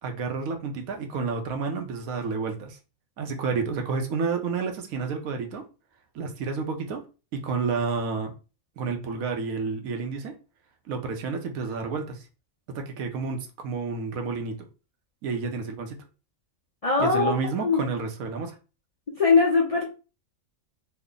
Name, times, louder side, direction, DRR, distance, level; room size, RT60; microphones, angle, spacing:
voice 1, 0.0-2.8 3.2-5.6 6.1-7.0 7.3-8.3 8.8-10.3 10.9-12.3 12.7-14.6 15.2-16.0 17.0-18.6, right 4 dB, 80° right, 1.1 m, -30 dB
voice 2, 16.8-17.8 19.1-19.8, left 4 dB, 45° left, 0.4 m, -21 dB
3.3 x 2.1 x 3.6 m
omnidirectional pair, 1.4 m